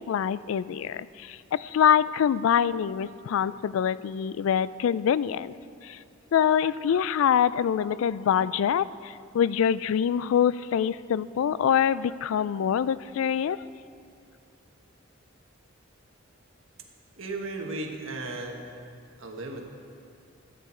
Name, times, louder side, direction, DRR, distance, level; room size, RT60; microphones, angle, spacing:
voice 1, 0.0-5.5 5.8-6.0 6.3-13.6, left 8 dB, 75° left, 18 dB, 0.3 m, -25 dB
voice 2, 17.2-18.8 19.2-19.7, right 2 dB, 80° right, 2 dB, 1.4 m, -35 dB
14.0 x 9.3 x 4.4 m, 2.4 s
head